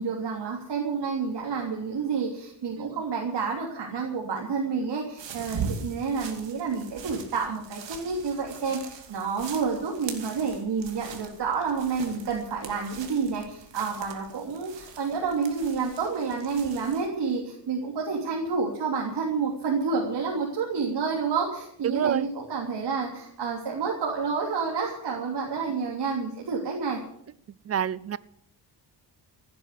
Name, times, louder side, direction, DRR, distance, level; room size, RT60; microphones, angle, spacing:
voice 1, 0.0-27.0, right 5 dB, 65° right, -2 dB, 3.3 m, -29 dB
sound 1, 5.2-17.1, right 6 dB, 90° right, 2.6 m, -41 dB
voice 2, 21.8-22.3 27.6-28.2, right 9 dB, 35° right, 19 dB, 0.5 m, -27 dB
16.0 x 9.5 x 8.3 m, 0.69 s
wide cardioid pair, 135°, 42 cm